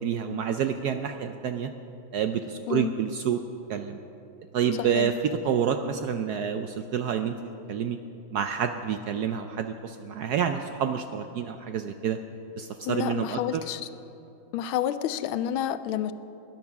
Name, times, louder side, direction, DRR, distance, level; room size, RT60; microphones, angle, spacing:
voice 1, 0.0-1.7 2.1-3.4 3.7-4.0 4.5-7.4 7.7-8.0 8.3-12.2 12.6-13.6, right 8 dB, 75° right, 7 dB, 0.9 m, -28 dB
voice 2, 12.9-13.9 14.5-16.1, left 11 dB, 90° left, 13 dB, 1.5 m, -29 dB
19.5 x 10.5 x 6.0 m, 2.8 s
omnidirectional pair, 2.2 m